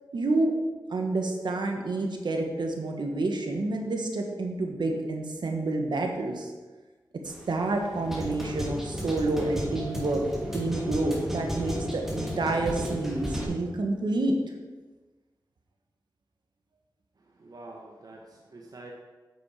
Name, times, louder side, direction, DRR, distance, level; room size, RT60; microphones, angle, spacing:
voice 1, 0.1-0.5 0.9-6.5 7.2-10.2 10.5-14.4, right 2 dB, 75° right, 2 dB, 1.6 m, -29 dB
sound 1, 7.3-13.4, equal, 5° right, 2.8 m, -34 dB
voice 2, 17.2-18.9, right 2 dB, 55° right, -1 dB, 1.3 m, -47 dB
8.3 x 8.1 x 5.0 m, 1.3 s
cardioid pair, 60°, 8 cm